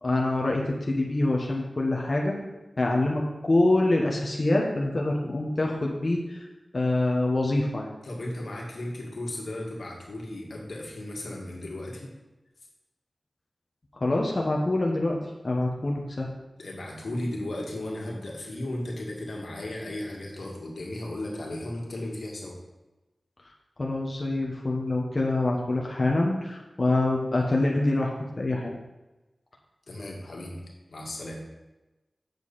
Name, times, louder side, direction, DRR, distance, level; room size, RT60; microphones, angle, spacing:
voice 1, 0.0-2.3 2.8-6.5 6.7-7.9 14.0-15.2 15.4-16.3 23.8-28.1 28.4-28.8, left 2 dB, 45° left, -1 dB, 1.2 m, -25 dB
voice 2, 8.0-12.1 16.6-22.6 29.9-30.6 30.9-31.4, left 1 dB, 85° left, -2 dB, 1.9 m, -35 dB
8.1 x 7.1 x 4.2 m, 1.1 s
wide cardioid pair, 75°, 0 cm